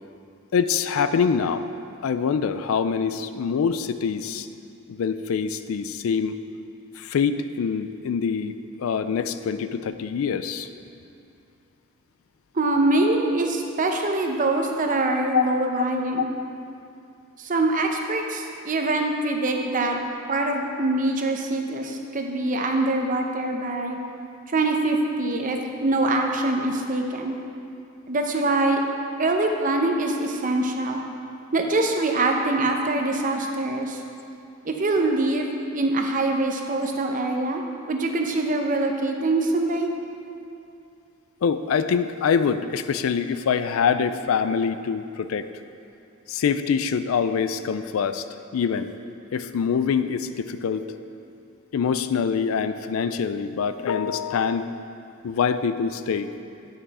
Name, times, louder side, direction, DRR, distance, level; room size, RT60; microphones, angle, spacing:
voice 1, 0.5-1.6 2.0-4.5 4.9-6.4 7.0-10.7 15.3-15.9 23.4-23.5 41.4-45.5 46.3-48.2 48.5-48.9 49.3-50.9 51.7-54.7 55.2-56.3, left 6 dB, 85° left, 11 dB, 0.4 m, -25 dB
voice 2, 12.5-16.3 17.4-20.0 20.3-24.0 24.5-27.4 28.1-28.8 29.2-31.0 31.5-34.0 34.6-37.6 37.9-39.9, right 2 dB, 40° right, 3 dB, 0.7 m, -24 dB
9.4 x 5.7 x 4.2 m, 2.6 s
head